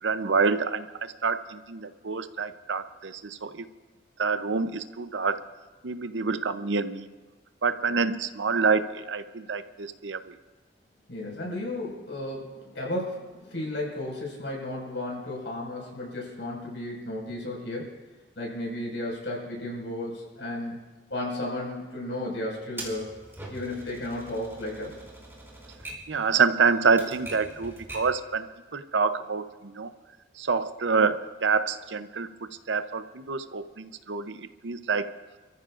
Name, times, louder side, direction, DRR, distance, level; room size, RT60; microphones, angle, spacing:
voice 1, 0.0-3.7 4.2-5.4 5.8-7.1 7.6-10.3 26.1-28.5 28.7-29.9 30.4-32.3 32.7-35.1, right 5 dB, 80° right, 11 dB, 0.7 m, -27 dB
voice 2, 11.1-17.9 18.4-20.8 21.1-23.2 23.5-25.0, left 1 dB, 90° left, -3 dB, 5.3 m, -34 dB
Typewriter, 22.8-28.2, right 1 dB, 15° right, 3.2 m, -43 dB
28.5 x 14.5 x 2.5 m, 1.3 s
head